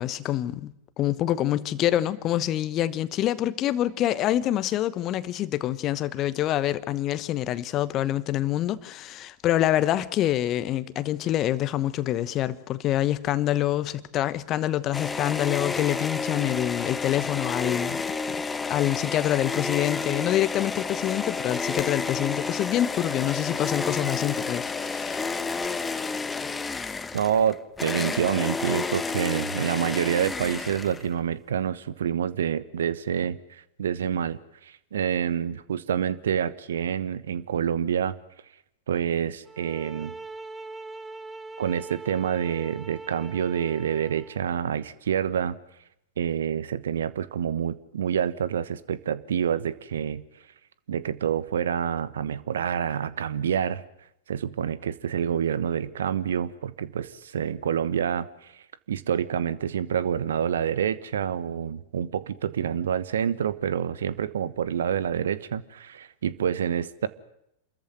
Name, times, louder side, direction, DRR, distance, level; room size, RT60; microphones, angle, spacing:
voice 1, 0.0-18.4 18.7-25.3, left 13 dB, 35° left, 1.1 m, -26 dB
sound 1, 14.9-31.2, left 4 dB, 15° left, 1.0 m, -31 dB
voice 2, 27.1-38.1 38.9-40.1 41.6-45.6 46.2-50.2 50.9-53.8 54.3-67.1, right 8 dB, 65° right, 1.2 m, -27 dB
sound 2, 39.5-44.4, right 3 dB, 10° right, 1.3 m, -41 dB
27.5 x 14.0 x 9.1 m
figure-of-eight pair, 95°, 0 cm